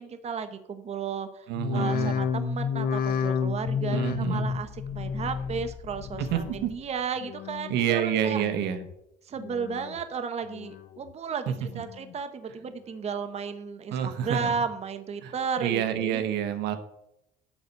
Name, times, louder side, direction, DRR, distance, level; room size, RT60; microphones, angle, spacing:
voice 1, 0.0-8.4 9.2-16.2, right 6 dB, 40° right, 9 dB, 1.0 m, -34 dB
sound 1, 1.5-6.9 7.2-7.8 8.3-8.9 9.4-10.0 10.4-11.1 11.6-12.1 12.7-12.8, left 6 dB, 60° left, 1.0 m, -31 dB
voice 2, 1.5-2.1 3.9-4.5 6.2-6.7 7.7-8.8 11.5-11.6 13.9-14.5 15.2-16.8, right 9 dB, 85° right, 8 dB, 1.2 m, -28 dB
11.5 x 4.2 x 8.0 m, 0.81 s
cardioid pair, 110°, 17 cm